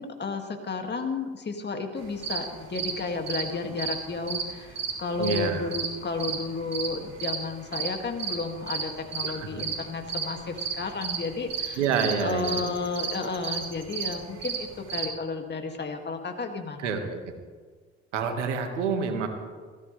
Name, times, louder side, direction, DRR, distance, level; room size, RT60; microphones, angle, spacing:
voice 1, 0.0-11.8 12.2-16.9, left 4 dB, 30° left, 4 dB, 2.4 m, -32 dB
sound 1, 2.0-15.1, right 6 dB, 45° right, 3.3 m, -33 dB
voice 2, 5.2-5.7 9.2-9.6 11.8-12.7 16.8-17.3 18.1-19.3, right 6 dB, 85° right, 5 dB, 1.9 m, -28 dB
19.5 x 15.5 x 3.4 m, 1.5 s
hypercardioid pair, 65°, 35 cm